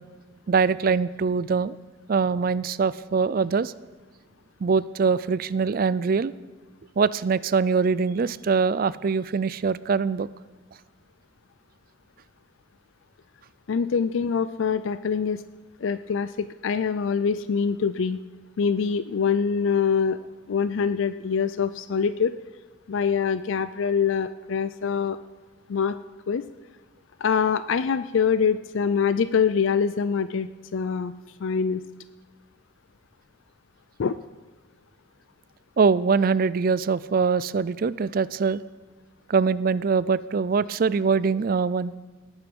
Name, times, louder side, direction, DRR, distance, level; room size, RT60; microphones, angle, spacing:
voice 1, 0.5-1.8 2.1-3.7 4.6-6.3 7.0-10.3 35.8-38.6 39.3-41.9, right 5 dB, 45° right, 18 dB, 0.4 m, -23 dB
voice 2, 13.7-15.4 15.8-18.2 18.6-20.2 20.5-22.3 22.9-25.2 25.7-25.9 26.3-26.4 27.2-31.1 31.4-31.8 34.0-34.2, left 6 dB, 70° left, 13 dB, 0.4 m, -24 dB
18.5 x 9.0 x 5.3 m, 1.3 s
head